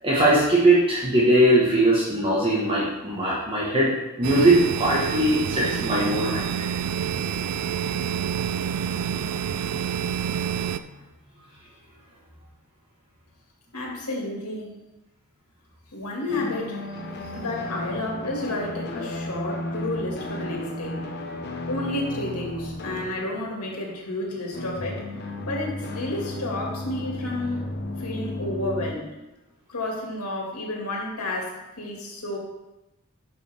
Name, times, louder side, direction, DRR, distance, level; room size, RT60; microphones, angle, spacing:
voice 1, 0.0-6.4 21.3-21.4, right 1 dB, 25° right, -6 dB, 1.5 m, -20 dB
sound 1, 4.2-10.8, right 8 dB, 80° right, 0.4 m, -28 dB
voice 2, 13.7-14.8 15.9-16.8 17.2-21.0 21.7-25.1 25.4-27.6 28.0-29.1 29.7-32.4, left 1 dB, 90° left, -1 dB, 2.3 m, -31 dB
sound 2, 16.3-24.2 24.5-28.9, left 2 dB, 50° left, 1.1 m, -34 dB
11.5 x 5.5 x 3.6 m, 1.0 s
head